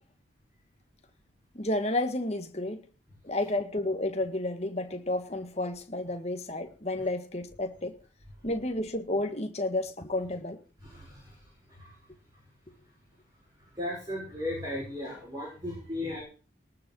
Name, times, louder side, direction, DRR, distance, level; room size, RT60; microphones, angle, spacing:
voice 1, 1.5-2.8 3.2-8.0 8.4-10.6, left 1 dB, 35° left, 1.8 m, -31 dB
voice 2, 10.8-12.1 13.6-16.2, left 1 dB, 20° right, 6.3 m, -37 dB
19.5 x 6.6 x 6.3 m
head